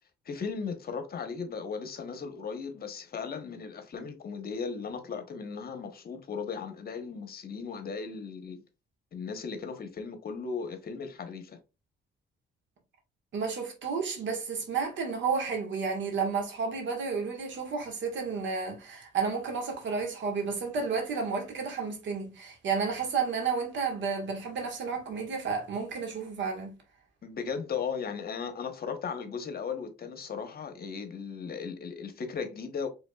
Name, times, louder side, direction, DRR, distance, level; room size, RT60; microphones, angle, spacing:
voice 1, 0.2-8.6 9.1-11.6 27.2-32.9, left 5 dB, 50° left, 1.1 m, -36 dB
voice 2, 13.3-26.7, right 5 dB, 65° right, 1.6 m, -31 dB
5.1 x 3.5 x 2.4 m
cardioid pair, 90°, 20 cm